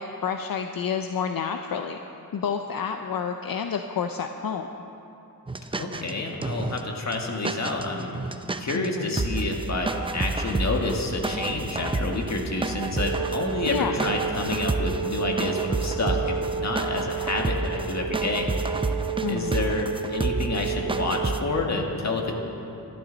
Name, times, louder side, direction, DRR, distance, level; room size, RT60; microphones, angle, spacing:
voice 1, 0.0-2.0 2.3-4.7 8.7-9.2 13.6-13.9 19.2-19.7, left 7 dB, 75° left, 5 dB, 0.7 m, -29 dB
sound 1, 5.5-6.1 6.4-6.8 7.1-7.2 7.4-8.9 9.2-21.4, right 2 dB, 15° right, 0.5 m, -30 dB
voice 2, 5.7-8.1 8.6-18.5 19.3-22.4, left 2 dB, 50° left, 1 dB, 1.9 m, -29 dB
Wind instrument woodwind instrument, 13.0-21.4, right 8 dB, 85° right, 0.7 m, -31 dB
25.0 x 12.0 x 4.1 m, 2.9 s
wide cardioid pair, 145°, 35 cm